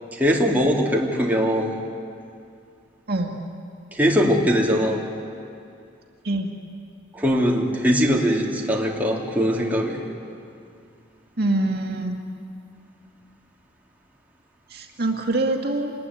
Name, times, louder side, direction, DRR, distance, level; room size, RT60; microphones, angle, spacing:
voice 1, 0.1-1.8 3.9-5.0 7.1-10.0, equal, 10° right, -3 dB, 3.2 m, -21 dB
voice 2, 11.4-12.1 14.7-15.9, right 2 dB, 55° right, 2 dB, 2.0 m, -24 dB
27.5 x 20.5 x 9.7 m, 2.4 s
head